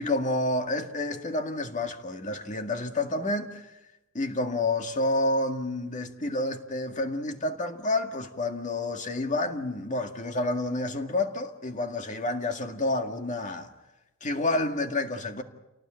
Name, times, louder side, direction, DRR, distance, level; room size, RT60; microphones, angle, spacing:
voice 1, 0.0-3.8 4.1-13.7 14.2-15.4, left 2 dB, 40° left, 2.0 m, -29 dB
29.0 x 18.5 x 9.0 m
head